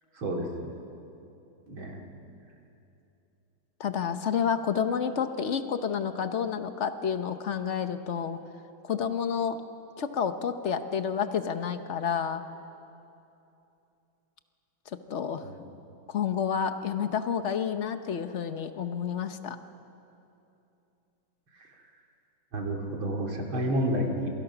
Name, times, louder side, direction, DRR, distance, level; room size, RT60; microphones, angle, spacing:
voice 1, 0.1-0.7 1.7-2.0 15.4-15.7 21.6-21.7 22.5-24.3, equal, 80° right, 0 dB, 3.3 m, -30 dB
voice 2, 3.8-8.4 8.8-9.6 10.0-12.4 15.1-15.4 16.1-19.6, left 7 dB, 50° left, 9 dB, 0.9 m, -29 dB
27.5 x 23.5 x 6.0 m, 2.8 s
omnidirectional pair, 2.2 m